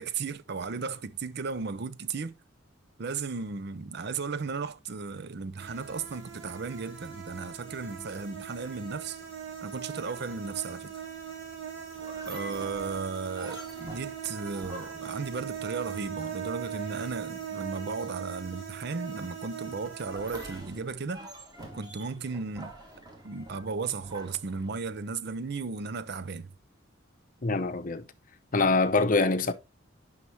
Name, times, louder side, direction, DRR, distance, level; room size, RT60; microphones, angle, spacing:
voice 1, 0.0-2.3 3.0-9.2 9.6-10.9 12.3-21.3 21.7-22.7 23.2-26.5, right 4 dB, 55° right, 0.6 m, -35 dB
sound 1, 5.6-20.6, right 8 dB, 75° right, 2.4 m, -40 dB
sound 2, 12.0-16.3 20.0-25.1, right 1 dB, 20° right, 2.3 m, -47 dB
voice 2, 27.4-28.0 28.5-29.5, left 3 dB, 40° left, 0.7 m, -24 dB
9.6 x 5.7 x 3.0 m
head